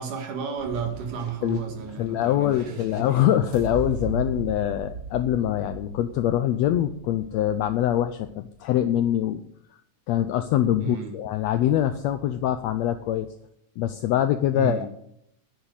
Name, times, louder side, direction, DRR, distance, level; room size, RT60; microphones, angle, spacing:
voice 1, 0.0-3.3 10.8-11.2 14.5-14.9, right 6 dB, 80° right, 3 dB, 3.5 m, -33 dB
sound 1, 0.6-8.6, right 4 dB, 45° right, 1.2 m, -38 dB
voice 2, 2.0-9.4 10.1-13.3 13.8-14.9, left 12 dB, 80° left, 10 dB, 1.5 m, -24 dB
10.5 x 7.5 x 8.1 m, 0.73 s
omnidirectional pair, 3.6 m